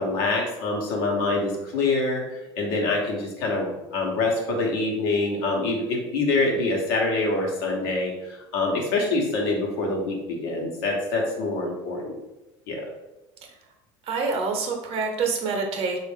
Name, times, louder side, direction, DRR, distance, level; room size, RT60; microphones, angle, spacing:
voice 1, 0.0-2.2 2.6-12.1 12.7-12.8, left 3 dB, 80° left, -1 dB, 0.9 m, -25 dB
voice 2, 14.0-16.0, right 4 dB, 50° right, 3 dB, 0.8 m, -26 dB
3.3 x 2.4 x 3.5 m, 0.98 s
supercardioid pair, 95°, 13 cm